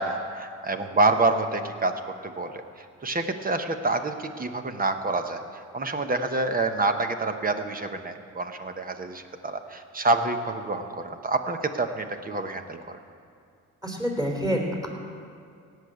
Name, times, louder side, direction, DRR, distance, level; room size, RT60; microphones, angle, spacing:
voice 1, 0.0-2.6 3.0-5.4 5.7-13.0, right 3 dB, 30° right, 7 dB, 1.0 m, -27 dB
voice 2, 13.8-14.9, equal, 10° right, 0 dB, 3.2 m, -27 dB
17.5 x 6.6 x 8.1 m, 2.3 s
cardioid pair, 90°, 30 cm